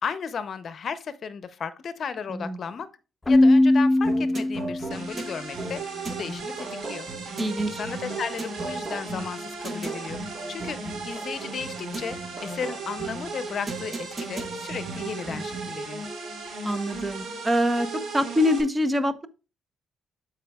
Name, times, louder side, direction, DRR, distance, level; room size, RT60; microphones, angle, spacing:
voice 1, 0.0-2.9 3.3-5.8 6.1-7.1 7.7-10.2 10.5-10.8 11.0-16.1, left 6 dB, 55° left, 0.7 m, -34 dB
Keyboard (musical), 3.3-5.1, left 1 dB, 20° left, 0.4 m, -19 dB
sound 1, 4.0-15.9, right 3 dB, 40° right, 1.5 m, -38 dB
sound 2, 4.9-18.6, right 3 dB, 65° right, 3.8 m, -36 dB
voice 2, 7.4-7.8 16.6-17.9 18.1-19.3, left 1 dB, 15° right, 0.8 m, -25 dB
12.5 x 4.8 x 2.3 m
cardioid pair, 90°, 0 cm